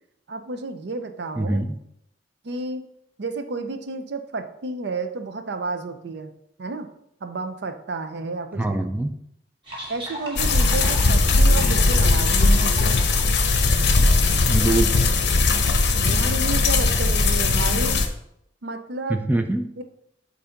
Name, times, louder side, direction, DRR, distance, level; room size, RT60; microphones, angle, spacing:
voice 1, 0.3-1.6 2.4-2.8 3.2-6.3 6.6-6.9 7.2-8.8 9.9-13.0 16.0-18.0 18.6-19.2 19.8-19.9, right 3 dB, 65° right, 8 dB, 0.6 m, -31 dB
voice 2, 1.4-1.8 8.6-9.1 14.5-15.0 19.1-19.7, right 2 dB, 10° right, 6 dB, 0.4 m, -23 dB
sound 1, 9.6-14.3, equal, 30° right, 1.9 m, -38 dB
sound 2, 10.4-18.1, left 3 dB, 65° left, 0.7 m, -19 dB
6.9 x 2.7 x 5.0 m, 0.77 s
head